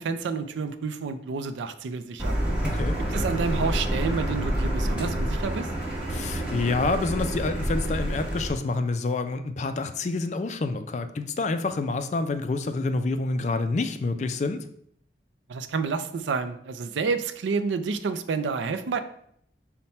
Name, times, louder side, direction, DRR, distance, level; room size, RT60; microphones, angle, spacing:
voice 1, 0.0-2.4 3.0-5.7 15.5-19.0, right 4 dB, 90° right, 10 dB, 0.4 m, -29 dB
Car, 2.2-8.5, equal, 5° right, 1.0 m, -28 dB
voice 2, 2.6-3.0 6.1-14.7, left 3 dB, 40° left, 9 dB, 0.3 m, -28 dB
5.5 x 2.1 x 4.2 m, 0.66 s
head